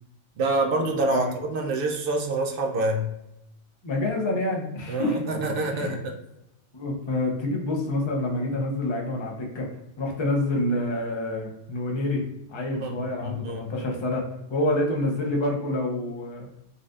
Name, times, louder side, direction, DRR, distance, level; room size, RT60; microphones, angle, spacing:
voice 1, 0.4-3.1 4.9-6.2 12.7-13.7, right 2 dB, 60° right, 2 dB, 0.6 m, -27 dB
voice 2, 3.8-5.2 5.7-6.0 6.7-9.7 10.0-12.2 12.5-14.2 14.5-16.5, left 1 dB, 35° left, -1 dB, 0.5 m, -27 dB
3.9 x 2.3 x 2.5 m, 0.87 s
omnidirectional pair, 1.3 m